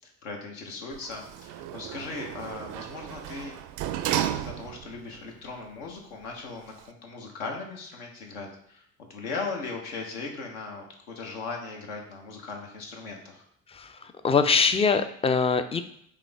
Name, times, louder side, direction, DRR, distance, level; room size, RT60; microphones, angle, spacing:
voice 1, 0.0-3.6 4.3-13.4, left 4 dB, 75° left, 1 dB, 1.0 m, -38 dB
Sliding door, 0.9-5.0 5.5-5.6, right 11 dB, 55° right, 0.4 m, -33 dB
voice 2, 13.7-15.8, left 5 dB, 15° left, 9 dB, 0.3 m, -23 dB
5.1 x 2.8 x 3.4 m, 0.69 s
figure-of-eight pair, 50°, 39 cm